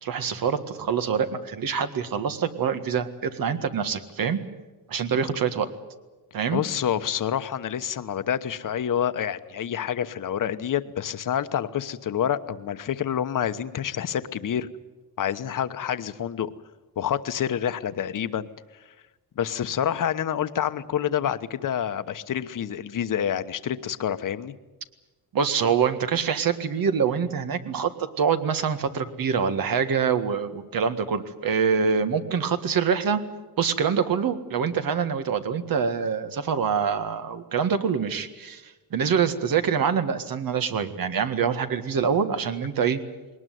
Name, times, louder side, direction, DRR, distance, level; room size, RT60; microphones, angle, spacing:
voice 1, 0.0-4.4 4.9-5.7 6.3-6.6 25.3-33.2 33.6-43.0, right 6 dB, 60° right, 9 dB, 1.8 m, -25 dB
voice 2, 6.5-14.7 15.2-16.5 17.0-18.5 19.4-24.5, left 9 dB, 55° left, 11 dB, 1.1 m, -28 dB
21.0 x 19.0 x 9.4 m, 1.2 s
cardioid pair, 110°, 39 cm